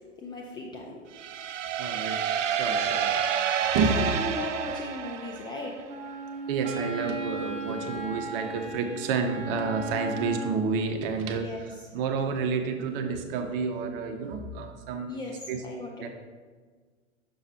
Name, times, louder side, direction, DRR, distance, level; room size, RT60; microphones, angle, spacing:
voice 1, 0.2-1.1 3.9-5.8 11.3-11.6 15.1-16.1, left 2 dB, 15° left, -1 dB, 0.3 m, -37 dB
sound 1, 1.1-5.9, right 8 dB, 75° right, 0.6 m, -29 dB
voice 2, 1.8-3.2 3.7-4.1 6.5-15.2 15.5-15.6 16.0-16.1, right 5 dB, 45° right, 5 dB, 0.9 m, -30 dB
Wind instrument woodwind instrument, 5.9-10.7, right 2 dB, 20° right, 0.8 m, -36 dB
6.3 x 5.7 x 2.8 m, 1.5 s
hypercardioid pair, 100°, 38 cm